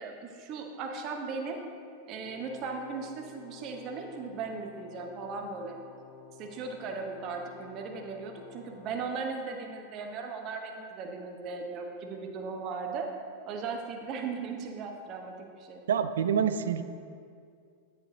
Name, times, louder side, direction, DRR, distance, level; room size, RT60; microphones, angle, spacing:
voice 1, 0.0-1.6 2.1-5.8 6.4-13.1 13.5-15.8, right 4 dB, 35° right, 3 dB, 0.8 m, -37 dB
Brass instrument, 2.2-9.1, left 8 dB, 45° left, 0.7 m, -52 dB
voice 2, 15.9-16.8, right 8 dB, 60° right, 11 dB, 0.4 m, -26 dB
9.6 x 5.2 x 3.8 m, 2.3 s
figure-of-eight pair, 90°, 0 cm